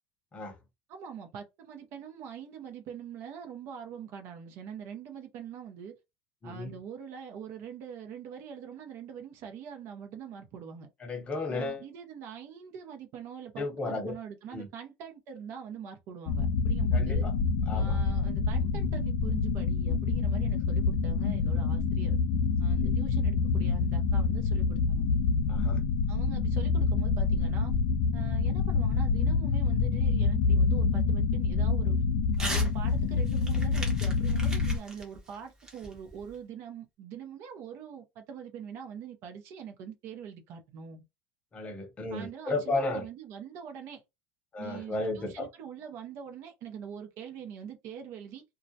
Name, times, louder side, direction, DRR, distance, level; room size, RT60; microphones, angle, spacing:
voice 1, 0.9-5.9 6.4-10.9 11.5-17.3 17.7-22.2 22.6-25.0 26.1-27.7 28.1-32.0 32.4-41.0 42.1-44.0 44.6-48.4, right 8 dB, 50° right, 0.6 m, -43 dB
voice 2, 6.4-6.7 11.0-11.8 13.6-14.1 14.5-14.7 16.9-17.3 17.7-18.0 25.5-25.8 41.5-43.1 44.5-45.5, left 2 dB, 20° left, 0.7 m, -33 dB
sound 1, 16.3-34.8, left 4 dB, 65° left, 0.3 m, -27 dB
Crumpling crinkling / Tearing, 32.3-32.7 33.0-36.4, right 1 dB, 15° right, 0.7 m, -39 dB
2.2 x 2.0 x 2.6 m
supercardioid pair, 135°, 5 cm